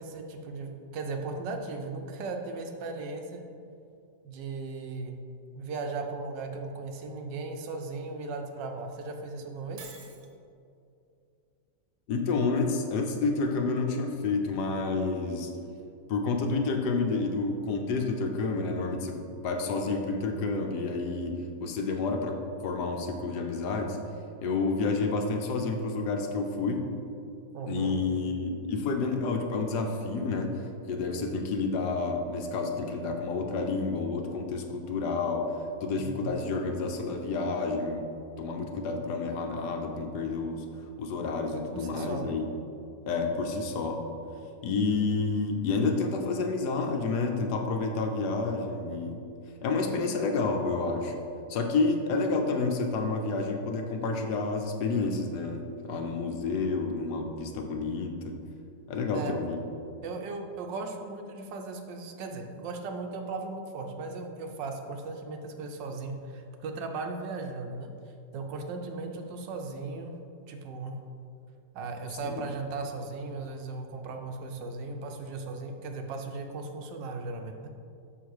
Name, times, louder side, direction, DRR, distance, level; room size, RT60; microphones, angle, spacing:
voice 1, 0.0-3.4 4.2-5.1 5.6-9.8 27.5-28.0 36.0-36.4 41.5-42.4 59.1-59.3 60.0-67.9 68.3-70.1 70.5-71.0 71.7-77.7, right 3 dB, 90° right, 4 dB, 1.4 m, -37 dB
Shatter, 9.8-10.3, right 5 dB, 70° right, 1.3 m, -46 dB
voice 2, 12.1-15.5 16.1-21.4 21.6-24.0 24.4-26.9 27.7-30.5 30.9-35.5 35.8-38.0 38.4-40.6 41.0-42.5 43.1-44.0 44.6-49.2 49.6-51.1 51.5-58.4 58.9-59.6 72.2-72.4, left 3 dB, 70° left, 4 dB, 1.3 m, -29 dB
6.4 x 5.8 x 4.7 m, 2.6 s
omnidirectional pair, 1.9 m